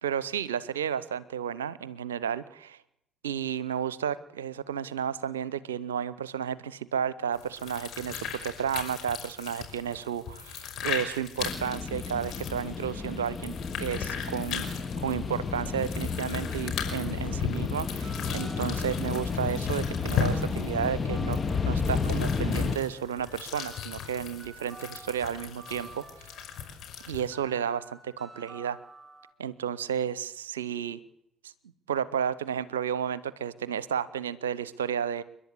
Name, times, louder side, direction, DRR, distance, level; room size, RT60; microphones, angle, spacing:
voice 1, 0.0-2.8 3.2-14.6 15.0-21.4 21.7-26.3 27.1-28.8 29.4-31.0 31.4-31.5 31.9-35.2, right 8 dB, 80° right, 19 dB, 0.7 m, -32 dB
sound 1, 7.3-27.3, left 7 dB, 55° left, 5.6 m, -37 dB
sound 2, 11.4-22.8, left 5 dB, 30° left, 2.0 m, -32 dB
sound 3, 18.0-29.3, right 2 dB, 5° right, 5.8 m, -51 dB
29.5 x 11.5 x 8.2 m, 0.81 s
figure-of-eight pair, 50°, 0 cm